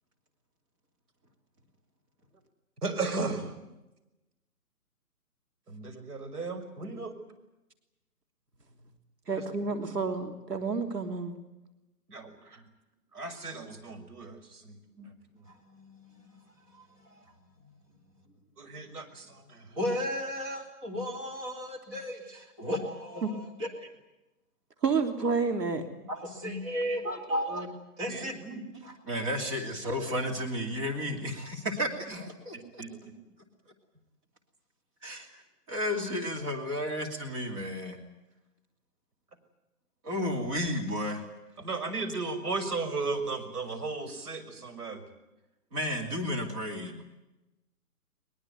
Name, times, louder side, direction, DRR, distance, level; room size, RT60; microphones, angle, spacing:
voice 1, 2.8-3.5 5.7-7.2 9.3-9.8 12.1-12.6 13.1-14.8 18.6-19.6 28.1-28.6 32.8-33.1 41.6-45.0, right 3 dB, 70° right, 7 dB, 6.0 m, -35 dB
voice 2, 9.3-11.3 23.2-23.3 24.8-25.8, right 4 dB, 85° right, 6 dB, 3.2 m, -29 dB
voice 3, 15.4-16.4 16.7-17.2 19.8-23.9 26.1-27.7 28.0-32.8 35.0-35.4 35.7-38.0 40.0-41.2 45.7-47.0, equal, 20° right, 1 dB, 2.7 m, -34 dB
22.0 x 21.5 x 9.3 m, 0.99 s
hypercardioid pair, 165°, 47 cm